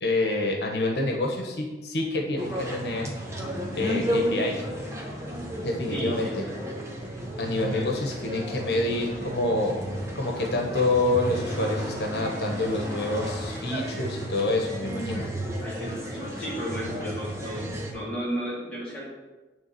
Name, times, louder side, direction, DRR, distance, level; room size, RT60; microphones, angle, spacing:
voice 1, 0.0-3.1 3.7-4.6 5.6-6.4 7.4-9.7 10.1-15.2, left 2 dB, 75° left, 1 dB, 1.2 m, -27 dB
sound 1, 2.4-17.9, equal, 15° right, 1.1 m, -33 dB
voice 2, 5.9-6.5 7.7-7.9 14.9-19.1, equal, 5° left, -8 dB, 2.7 m, -34 dB
9.4 x 3.6 x 6.8 m, 1.2 s
head